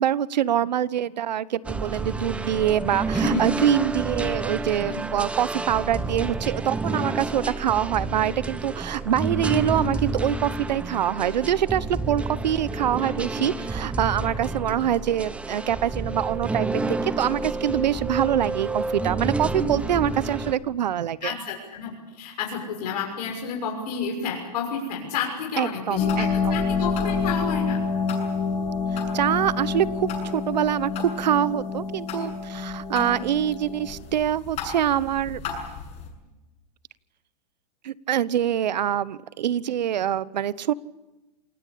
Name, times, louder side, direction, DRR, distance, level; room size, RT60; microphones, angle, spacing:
voice 1, 0.0-21.3 25.6-26.5 28.9-35.4 37.8-40.7, right 10 dB, 90° right, 19 dB, 1.0 m, -25 dB
sound 1, 1.6-20.5, right 3 dB, 5° right, 0.9 m, -29 dB
voice 2, 3.1-3.5 4.8-5.0 13.0-13.1 13.4-13.5 21.2-27.8 32.9-33.2, left 6 dB, 70° left, 0 dB, 6.5 m, -31 dB
sound 2, 26.0-36.1, left 5 dB, 30° left, 7.3 m, -28 dB
27.5 x 19.0 x 8.6 m, 1.1 s
supercardioid pair, 150°, 21 cm